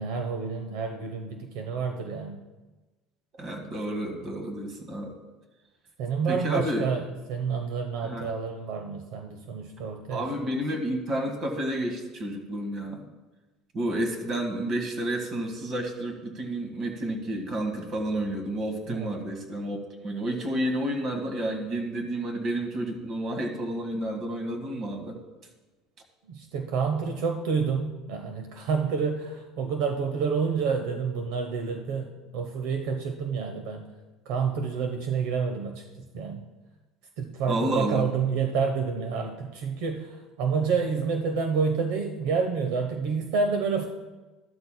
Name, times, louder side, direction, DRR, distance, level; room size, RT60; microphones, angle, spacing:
voice 1, 0.0-2.4 6.0-7.0 7.3-10.3 18.9-19.1 26.3-33.9 34.3-35.8 36.1-36.5 37.2-43.9, right 5 dB, 70° right, 5 dB, 0.9 m, -28 dB
voice 2, 3.4-5.1 6.3-6.8 8.0-8.3 10.1-13.1 13.7-25.2 37.5-38.1, right 1 dB, 35° right, 4 dB, 1.8 m, -30 dB
13.5 x 12.0 x 2.3 m, 1.2 s
cardioid pair, 145°, 0 cm